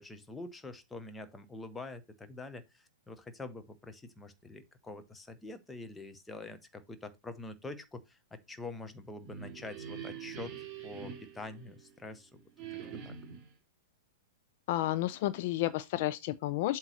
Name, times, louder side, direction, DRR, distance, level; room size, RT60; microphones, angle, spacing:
voice 1, 0.0-10.5 10.8-12.4 13.0-13.2, left 2 dB, 10° left, 0.9 m, -45 dB
sound 1, 9.0-12.1 12.6-13.5, right 8 dB, 30° right, 2.6 m, -45 dB
voice 2, 14.7-16.8, left 15 dB, 45° left, 0.4 m, -31 dB
7.8 x 3.0 x 5.7 m
figure-of-eight pair, 105°, 0 cm